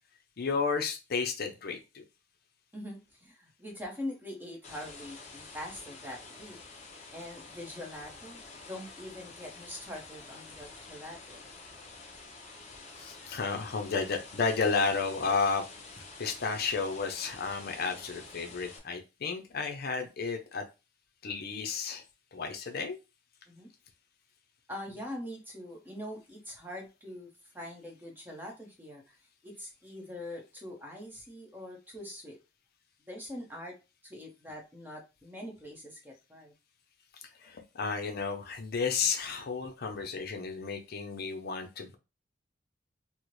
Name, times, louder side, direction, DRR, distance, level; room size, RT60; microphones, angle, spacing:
voice 1, 0.4-2.0 13.0-15.7 16.2-20.6 21.2-22.0 22.3-23.0 37.2-42.0, left 5 dB, 55° left, 5 dB, 0.5 m, -32 dB
voice 2, 2.7-6.6 7.1-11.5 23.5-23.7 24.7-29.1 29.4-32.4 33.0-33.8 34.0-36.5, left 1 dB, 10° right, 1 dB, 0.9 m, -43 dB
sound 1, 4.6-18.8, left 3 dB, 35° left, 0.9 m, -49 dB
4.2 x 2.1 x 3.1 m, 0.28 s
head